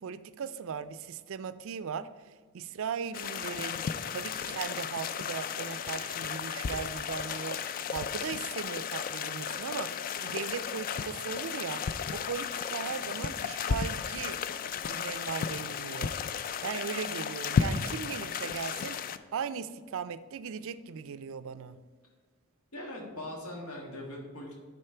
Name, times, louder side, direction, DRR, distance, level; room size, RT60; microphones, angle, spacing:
voice 1, 0.0-14.4 14.9-16.2 16.6-21.8, right 6 dB, 65° right, 13 dB, 0.4 m, -38 dB
sound 1, 3.1-19.2, left 7 dB, 40° left, 0.3 m, -34 dB
voice 2, 22.7-24.6, left 1 dB, 80° left, 0 dB, 1.8 m, -41 dB
9.8 x 4.3 x 4.4 m, 1.5 s
head